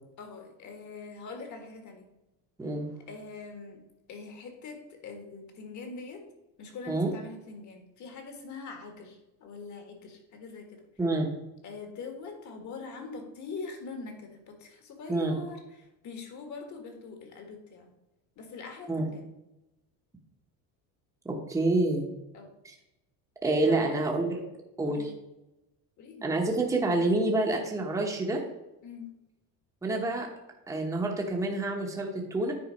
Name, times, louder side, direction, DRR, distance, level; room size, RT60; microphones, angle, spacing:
voice 1, 0.2-2.1 3.1-3.8 4.1-6.2 6.6-10.8 11.6-17.9 18.4-19.3 22.3-22.6 23.6-24.0 24.8-25.1 26.0-26.3 28.8-29.1, left 4 dB, 45° left, 4 dB, 1.8 m, -43 dB
voice 2, 11.0-11.3 15.1-15.4 18.9-19.1 21.2-22.1 23.4-24.4 24.8-25.1 26.2-28.4 29.8-30.3 30.7-32.5, right 2 dB, 10° right, 0 dB, 1.0 m, -27 dB
9.6 x 4.0 x 5.2 m, 0.94 s
cardioid pair, 155°, 39 cm